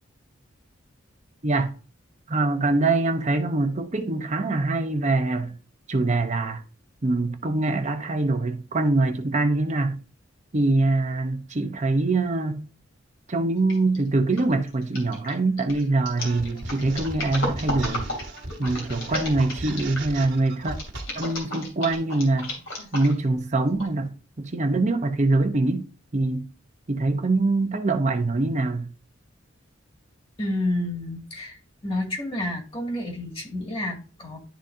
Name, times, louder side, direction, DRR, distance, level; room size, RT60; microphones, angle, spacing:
voice 1, 2.3-5.5 5.9-6.6 7.0-10.0 10.5-12.6 13.3-18.1 18.6-20.8 21.1-22.5 22.9-25.9 26.1-26.5 26.9-28.9, right 2 dB, 35° right, 0.8 m, -24 dB
sound 1, 13.7-14.0 14.3-20.1 20.7-23.3 23.8-23.9, left 1 dB, 90° left, 2.8 m, -33 dB
sound 2, 16.2-21.3, right 2 dB, 60° right, 1.6 m, -37 dB
voice 2, 30.4-34.4, left 1 dB, 30° left, 2.1 m, -30 dB
11.5 x 4.0 x 2.6 m
head